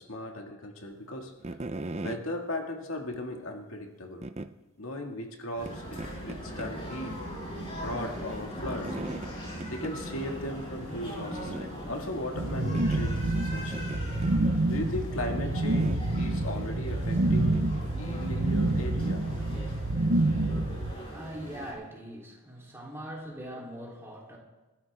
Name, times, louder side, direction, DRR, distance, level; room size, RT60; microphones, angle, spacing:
voice 1, 0.0-1.4 2.0-4.3 4.8-7.1 7.8-9.0 9.7-13.9 14.7-17.6 18.0-19.2, left 1 dB, 75° left, 2 dB, 2.1 m, -37 dB
sound 1, 1.4-2.2 3.1-3.2 4.2-4.5 5.6-5.7 6.0-6.7 7.0-7.1 8.7-9.3 9.6-9.9 10.2-10.3 10.7-10.8 11.3-11.7 12.7-13.0 13.7-14.4 15.7-16.3 17.5-17.7, right 2 dB, 30° right, 0.7 m, -38 dB
sound 2, 5.6-21.7, equal, 25° left, 6.1 m, -40 dB
sound 3, 12.3-20.9, right 2 dB, 80° right, 1.2 m, -28 dB
voice 2, 21.1-24.4, right 1 dB, 10° right, -3 dB, 3.5 m, -42 dB
29.5 x 13.0 x 3.6 m, 1.1 s
head